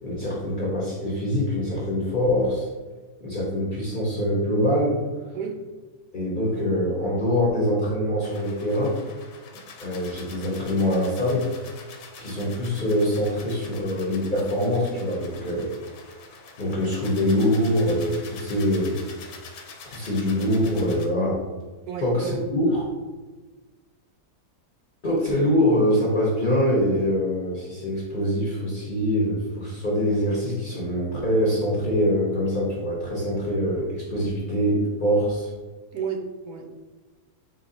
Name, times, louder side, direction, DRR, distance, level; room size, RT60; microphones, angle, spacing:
voice 1, 0.0-2.7 3.2-5.0 6.1-9.0 9.8-11.5 12.2-15.7 16.6-19.0 19.9-21.4 22.0-22.8 25.0-35.5, equal, 40° left, -5 dB, 0.8 m, -24 dB
sound 1, 8.2-21.1, left 4 dB, 65° left, 0.9 m, -45 dB
voice 2, 21.9-22.5 35.9-36.8, right 6 dB, 75° right, 2 dB, 1.1 m, -31 dB
4.0 x 2.7 x 3.8 m, 1.3 s
omnidirectional pair, 1.7 m